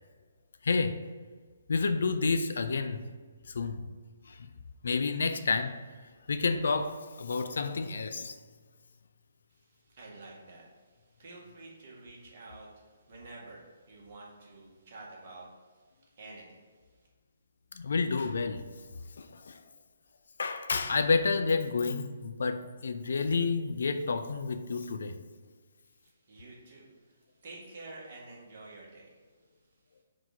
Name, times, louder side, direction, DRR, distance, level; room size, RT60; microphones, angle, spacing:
voice 1, 0.6-1.0 1.7-3.0 3.5-3.9 4.3-4.5 4.8-5.8 6.3-8.4 17.7-18.6 19.2-19.6 20.4-25.2, left 4 dB, 60° left, 8 dB, 0.5 m, -30 dB
voice 2, 9.5-17.1 25.8-29.8, right 2 dB, 45° right, -4 dB, 1.8 m, -50 dB
4.8 x 3.8 x 5.5 m, 1.5 s
figure-of-eight pair, 135°, 0 cm